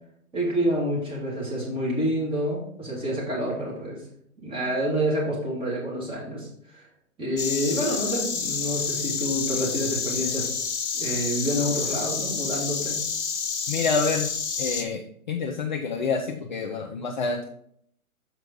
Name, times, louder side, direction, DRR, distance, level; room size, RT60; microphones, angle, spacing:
voice 1, 0.3-4.0 4.4-6.8 7.2-10.5 10.9-13.0, equal, 10° right, -5 dB, 2.4 m, -28 dB
Insect, 7.4-14.8, left 6 dB, 50° left, 1.2 m, -29 dB
voice 2, 13.7-14.3 14.6-15.0 15.3-17.4, left 4 dB, 35° left, 3 dB, 0.5 m, -27 dB
6.8 x 4.6 x 4.6 m, 0.68 s
hypercardioid pair, 135°, 44 cm